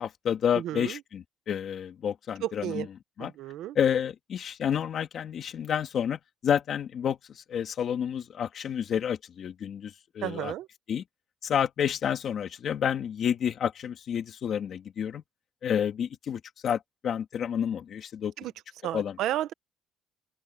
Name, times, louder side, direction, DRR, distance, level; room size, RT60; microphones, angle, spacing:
voice 1, 0.0-2.9 3.2-3.3 3.7-10.5 10.9-11.0 11.4-15.2 15.6-18.3 18.9-19.2, left 8 dB, 35° left, 2.6 m, -30 dB
voice 2, 0.5-1.0 2.4-2.9 3.2-3.8 10.2-10.7 18.4-18.5 18.8-19.5, right 13 dB, 60° right, 1.0 m, -32 dB
open air
cardioid pair, 175°, 0 cm